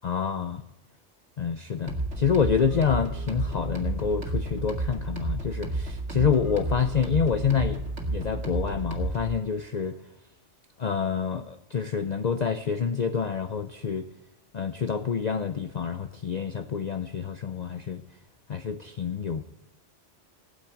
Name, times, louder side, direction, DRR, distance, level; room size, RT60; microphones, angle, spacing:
voice 1, 0.0-0.6 1.4-7.8 8.1-10.0 10.8-14.1 14.5-18.0 18.5-19.4, left 6 dB, 45° left, 8 dB, 0.6 m, -27 dB
sound 1, 1.9-9.4, right 2 dB, 70° right, 2.4 m, -31 dB
16.5 x 7.4 x 9.2 m, 0.91 s
omnidirectional pair, 1.2 m